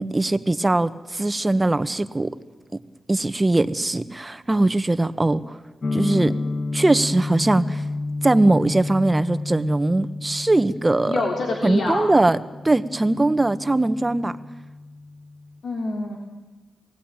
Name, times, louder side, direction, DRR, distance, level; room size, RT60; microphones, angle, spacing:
voice 1, 0.0-2.3 3.1-5.6 5.9-6.3 6.7-7.8 8.2-11.2 11.6-12.4 12.6-14.4, right 2 dB, 25° right, 12 dB, 1.4 m, -20 dB
sound 1, 5.8-15.6, left 3 dB, 55° left, 1.5 m, -31 dB
voice 2, 11.0-12.1 15.6-16.2, left 3 dB, 80° left, 0 dB, 3.4 m, -26 dB
28.5 x 19.0 x 9.1 m, 1.2 s
cardioid pair, 55°, 0 cm